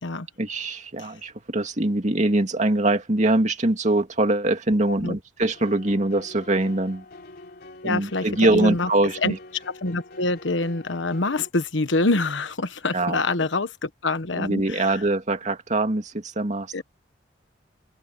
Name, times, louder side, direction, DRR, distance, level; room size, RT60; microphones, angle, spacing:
voice 1, 0.4-7.0 7.8-9.4 12.9-13.2 14.3-16.8, right 2 dB, 40° right, 2.4 m, -23 dB
sound 1, 5.5-11.5, left 2 dB, 60° left, 4.1 m, -45 dB
voice 2, 7.8-8.9 9.2-9.3 9.7-15.0 16.7-16.8, left 2 dB, 90° left, 1.3 m, -26 dB
open air
head